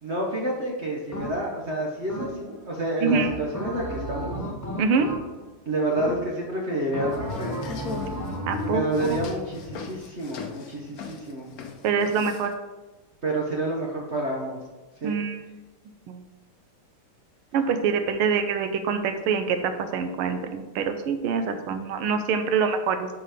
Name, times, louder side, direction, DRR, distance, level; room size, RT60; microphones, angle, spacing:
voice 1, 0.0-4.3 5.7-7.5 8.5-11.5 13.2-14.6 15.0-15.2, right 1 dB, 50° right, -2 dB, 0.8 m, -29 dB
sound 1, 1.1-1.6 2.1-2.6 3.1-5.5 6.0-6.5 6.9-8.9, equal, 15° left, 0.7 m, -33 dB
voice 2, 4.8-5.1 8.5-9.2 11.8-12.5 15.0-15.5 16.1-16.2 17.5-23.1, right 5 dB, 85° right, 8 dB, 1.6 m, -25 dB
sound 2, 7.1-12.5, left 5 dB, 65° left, 0.9 m, -38 dB
6.3 x 4.8 x 4.9 m, 1.2 s
omnidirectional pair, 2.4 m